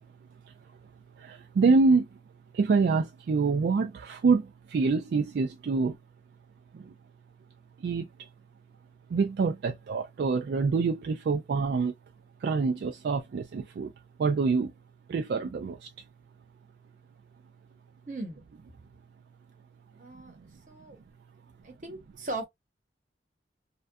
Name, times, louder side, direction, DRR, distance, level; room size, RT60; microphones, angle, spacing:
voice 1, 1.2-2.1 2.5-6.0 6.7-6.9 7.8-8.3 9.1-11.9 12.4-13.9 14.2-14.7 15.1-15.9, right 4 dB, 70° right, 0.3 m, -26 dB
voice 2, 18.1-18.4 20.0-20.4 20.7-21.0 21.6-22.4, right 2 dB, 45° right, 0.8 m, -38 dB
2.6 x 2.2 x 2.3 m
head